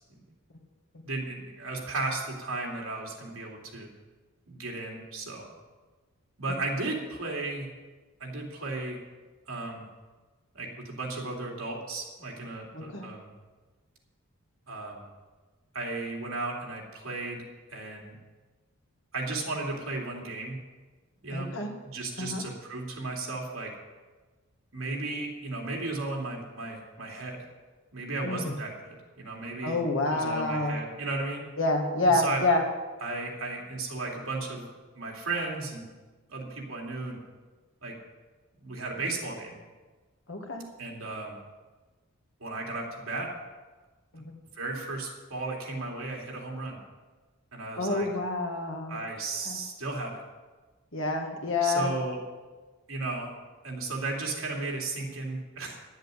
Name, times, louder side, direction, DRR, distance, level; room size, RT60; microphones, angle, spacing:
voice 1, 1.0-3.9 4.5-5.4 6.4-7.7 8.2-9.0 9.5-9.9 10.5-13.3 14.7-15.0 15.7-17.4 17.7-18.1 19.1-20.6 21.2-21.5 21.8-23.7 24.7-27.5 27.9-29.8 30.1-31.4 32.1-32.4 33.0-34.7 34.9-35.9 36.3-37.2 37.8-37.9 38.6-39.6 40.8-41.4 42.4-43.3 44.5-46.8 47.5-48.1 48.9-50.2 51.6-52.2 52.9-53.3 53.6-55.8, right 3 dB, 70° right, -1 dB, 2.9 m, -35 dB
voice 2, 12.7-13.1 21.3-21.7 22.2-22.4 28.2-28.6 29.6-30.8 31.6-32.6 40.3-40.6 44.1-44.3 47.8-49.0 49.5-49.6 50.9-51.9, left 2 dB, 55° left, 2 dB, 1.9 m, -28 dB
11.5 x 7.9 x 8.2 m, 1.3 s
head